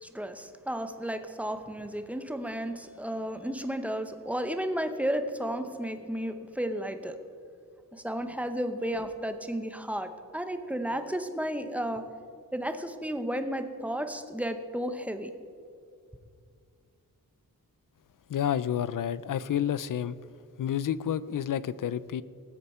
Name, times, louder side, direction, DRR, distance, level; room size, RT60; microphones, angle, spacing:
voice 1, 0.0-7.2 7.9-12.0 12.5-15.3, equal, 5° right, 8 dB, 0.7 m, -33 dB
voice 2, 18.3-20.2 20.6-22.2, left 9 dB, 60° left, 17 dB, 0.5 m, -29 dB
19.0 x 8.1 x 4.3 m, 2.3 s
wide cardioid pair, 130°, 36 cm